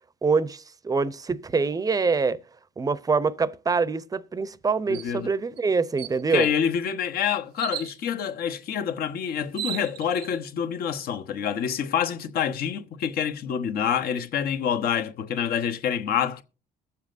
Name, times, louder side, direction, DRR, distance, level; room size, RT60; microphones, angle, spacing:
voice 1, 0.2-2.4 2.8-6.5, right 4 dB, 20° right, 0.6 m, -25 dB
voice 2, 4.9-5.3 6.3-16.4, left 8 dB, 65° left, 1.1 m, -27 dB
sound 1, 4.9-5.1 5.6-5.7 6.0-6.6 7.6-8.0 9.1-9.2 9.4-10.3, right 13 dB, 70° right, 0.6 m, -35 dB
21.5 x 7.2 x 2.6 m
cardioid pair, 110°, 17 cm